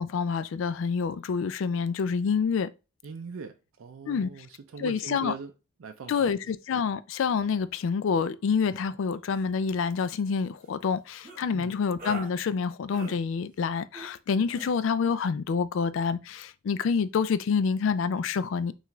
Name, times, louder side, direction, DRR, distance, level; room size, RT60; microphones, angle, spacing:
voice 1, 0.0-2.7 4.1-4.3 4.8-5.3 6.1-18.7, left 6 dB, 70° left, 0.3 m, -27 dB
voice 2, 3.0-5.5 5.8-6.5 11.5-11.7, right 5 dB, 80° right, 0.4 m, -41 dB
sound 1, 9.3-9.4 9.7-10.1 11.2-11.4 12.0-12.3 12.9-13.2 13.9-14.2 14.5-14.7, right 2 dB, 40° right, 1.2 m, -41 dB
5.6 x 2.4 x 3.0 m
head